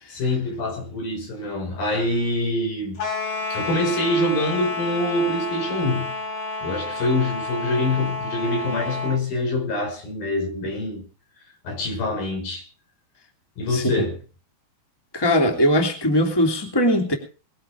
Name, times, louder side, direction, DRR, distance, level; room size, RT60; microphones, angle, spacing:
voice 1, 0.1-3.0 3.5-6.1 6.6-11.0 11.6-12.7 13.6-14.2, left 1 dB, 75° left, 7.2 m, -25 dB
sound 1, 3.0-9.2, left 3 dB, 60° left, 5.7 m, -30 dB
voice 2, 13.7-14.1 15.1-17.1, equal, 5° left, 2.7 m, -20 dB
21.5 x 8.6 x 5.9 m
omnidirectional pair, 4.1 m